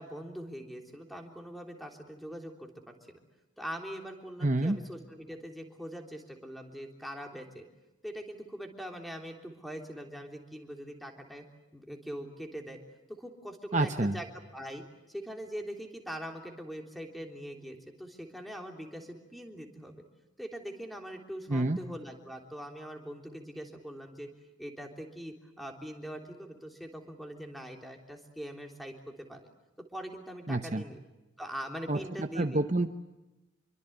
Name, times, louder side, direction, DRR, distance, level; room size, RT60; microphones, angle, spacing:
voice 1, 0.0-3.2 3.6-7.7 8.0-11.4 11.7-12.8 13.1-14.3 14.5-20.0 20.4-24.3 24.6-29.4 29.9-31.0 31.4-32.6, equal, ahead, 2 dB, 3.4 m, -42 dB
voice 2, 4.4-4.8 13.7-14.2 21.5-21.8 30.5-30.8 31.9-32.9, right 2 dB, 35° right, 7 dB, 0.9 m, -28 dB
27.5 x 24.0 x 8.0 m, 1.0 s
head